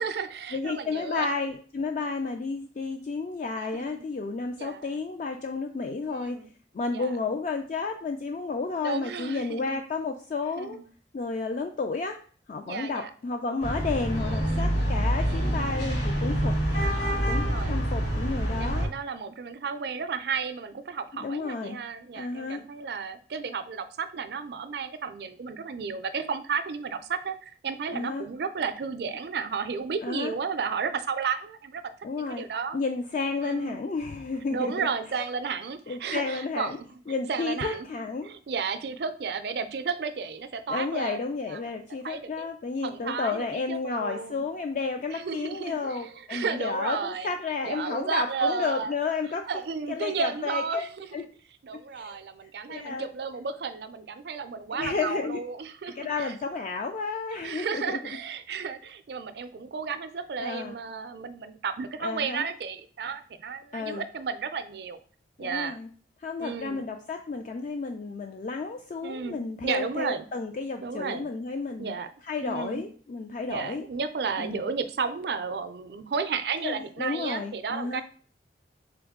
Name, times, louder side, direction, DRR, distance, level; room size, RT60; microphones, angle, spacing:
voice 1, 0.0-1.3 3.7-4.0 4.6-4.9 6.1-6.5 6.9-7.1 8.8-9.8 10.6-10.8 12.7-13.1 14.2-14.7 15.2-15.9 16.7-17.9 18.6-31.8 32.1-32.8 33.4-33.8 34.5-36.9 37.3-37.9 38.2-41.6 42.0-42.5 42.8-44.4 45.1-47.3 47.6-48.9 49.5-51.1 51.6-56.3 57.4-65.0 65.4-65.7 66.4-66.8 69.0-70.2 70.8-71.3 71.8-72.1 72.4-72.8 73.5-78.0, right 5 dB, 65° right, 10 dB, 0.4 m, -33 dB
voice 2, 0.5-6.4 6.7-10.8 11.1-12.2 12.5-16.6 17.2-18.9 21.1-21.8 22.2-22.7 27.9-28.3 30.0-30.3 32.0-32.5 32.7-34.9 35.1-35.2 35.9-36.8 37.1-38.3 40.7-49.4 49.9-50.8 51.1-51.2 51.7-53.1 54.7-55.4 55.9-58.0 60.4-60.8 62.0-62.5 63.7-64.0 65.4-65.9 66.2-71.9 72.2-73.9 74.4-74.7 76.6-78.0, left 4 dB, 45° left, 5 dB, 0.3 m, -32 dB
sound 1, 13.6-18.9, equal, 65° left, 2.0 m, -26 dB
3.8 x 3.4 x 3.6 m, 0.44 s
head